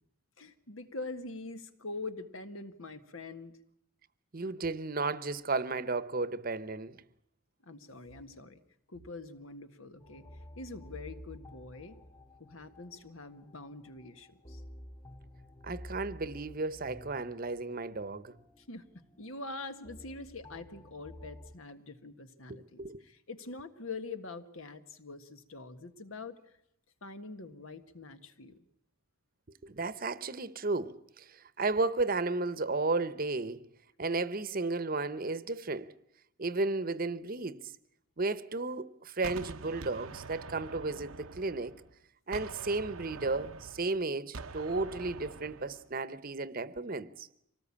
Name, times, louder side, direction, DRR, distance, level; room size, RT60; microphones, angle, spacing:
voice 1, 0.4-3.6 7.6-8.6 8.9-10.3 10.6-12.0 12.4-14.6 18.6-18.9 19.2-26.6 27.0-28.6, left 3 dB, 75° left, 1.7 m, -44 dB
voice 2, 4.3-6.9 15.6-18.4 22.8-23.0 29.6-33.6 34.0-35.9 36.4-37.7 38.2-41.7 42.3-47.3, right 3 dB, 45° right, 0.9 m, -33 dB
sound 1, 10.0-21.6, equal, 20° left, 2.3 m, -51 dB
Gunshot gunfire, 39.2-41.9 42.3-45.9, right 4 dB, 85° right, 0.9 m, -45 dB
25.0 x 19.0 x 8.7 m
head